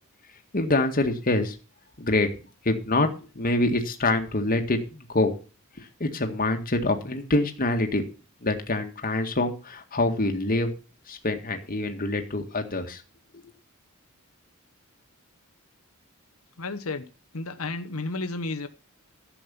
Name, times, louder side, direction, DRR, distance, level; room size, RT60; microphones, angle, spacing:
voice 1, 0.5-1.6 2.0-2.3 2.7-3.1 3.4-5.3 5.8-8.0 8.4-10.7 11.1-13.0, left 2 dB, 40° left, 1.9 m, -25 dB
voice 2, 16.6-17.0 17.3-18.7, left 3 dB, 75° left, 1.2 m, -32 dB
11.5 x 7.7 x 7.0 m
head